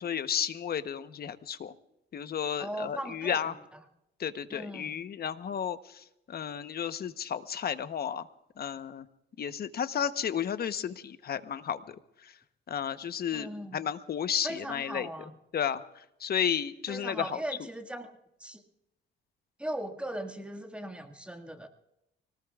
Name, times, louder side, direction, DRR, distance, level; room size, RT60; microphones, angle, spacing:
voice 1, 0.0-1.7 2.1-3.5 4.2-8.3 8.6-9.1 9.4-12.3 12.7-15.1 15.5-17.4, left 8 dB, 50° left, 11 dB, 1.0 m, -33 dB
voice 2, 2.6-3.4 4.5-5.0 13.3-13.8 14.4-15.3 16.9-18.1 18.4-18.6 19.6-21.7, right 1 dB, 5° right, 4 dB, 1.9 m, -38 dB
25.0 x 19.0 x 2.4 m, 0.84 s
cardioid pair, 90°, 20 cm